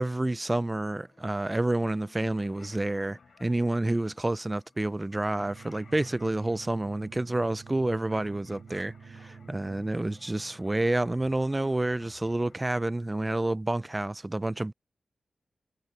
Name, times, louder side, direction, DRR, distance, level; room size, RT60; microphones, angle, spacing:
voice 1, 0.0-14.7, right 2 dB, 20° right, 0.3 m, -29 dB
sound 1, 0.9-12.6, left 6 dB, 80° left, 3.5 m, -57 dB
sound 2, 5.4-10.8, right 5 dB, 75° right, 4.9 m, -49 dB
wide cardioid pair, 120°, 0 cm